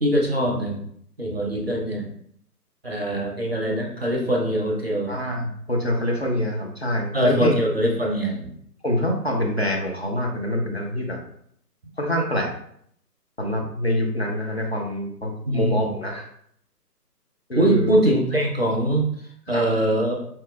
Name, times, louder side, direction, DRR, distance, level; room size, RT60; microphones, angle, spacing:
voice 1, 0.0-0.8 1.2-2.1 2.8-5.2 7.1-8.5 15.5-15.9 17.5-19.1 19.5-20.2, right 1 dB, 40° right, 0 dB, 0.5 m, -22 dB
voice 2, 5.1-7.5 8.8-11.2 12.0-12.5 13.4-16.3 17.5-17.9 19.5-19.6, left 1 dB, 45° left, 0 dB, 0.5 m, -25 dB
4.3 x 2.9 x 2.3 m, 0.68 s
figure-of-eight pair, 150°, 49 cm